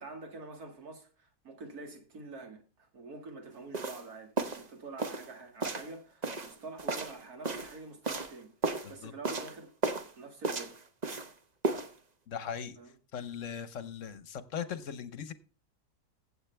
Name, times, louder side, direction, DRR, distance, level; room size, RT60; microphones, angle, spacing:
voice 1, 0.0-8.5 8.9-9.7 10.2-10.8 12.8-12.9, right 3 dB, 60° right, 2.7 m, -46 dB
sound 1, 3.7-4.0 4.4-4.7 5.0-5.3 5.6-5.9 6.2-7.8 8.0-8.3 8.6-8.9 9.2-9.6 9.8-10.1 10.4-11.3 11.6-11.9, right 3 dB, 30° right, 0.9 m, -34 dB
voice 2, 12.3-12.8 13.1-15.3, left 8 dB, 55° left, 1.2 m, -39 dB
15.5 x 8.0 x 3.4 m
omnidirectional pair, 1.8 m